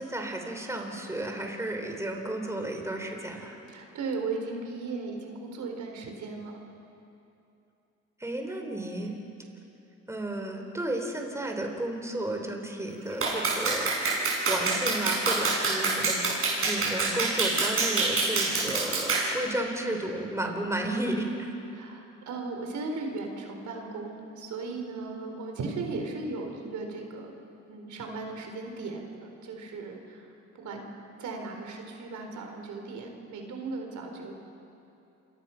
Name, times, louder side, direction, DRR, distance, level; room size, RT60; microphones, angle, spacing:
voice 1, 0.0-3.6 8.2-9.1 10.1-13.9 14.5-21.5, right 1 dB, 10° right, 3 dB, 3.7 m, -33 dB
voice 2, 3.7-6.6 21.7-27.3 27.7-30.3 30.6-30.9 31.2-34.3, right 3 dB, 70° right, 3 dB, 4.2 m, -37 dB
Clapping, 13.2-19.3, right 3 dB, 45° right, 7.0 m, -26 dB
28.0 x 24.5 x 5.9 m, 2.8 s
cardioid pair, 90°, 30 cm